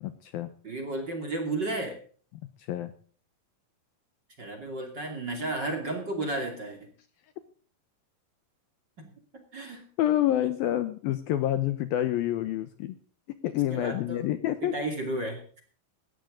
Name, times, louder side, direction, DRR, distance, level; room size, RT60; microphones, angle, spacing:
voice 1, 0.0-0.5 2.6-2.9 10.0-13.0 13.4-14.7, left 12 dB, 75° left, 11 dB, 2.4 m, -28 dB
voice 2, 0.6-2.0 4.4-6.9 9.0-9.1 9.5-9.9 13.7-14.3 14.6-15.6, right 2 dB, 30° right, 4 dB, 2.7 m, -33 dB
18.5 x 13.0 x 3.8 m, 0.43 s
omnidirectional pair, 4.9 m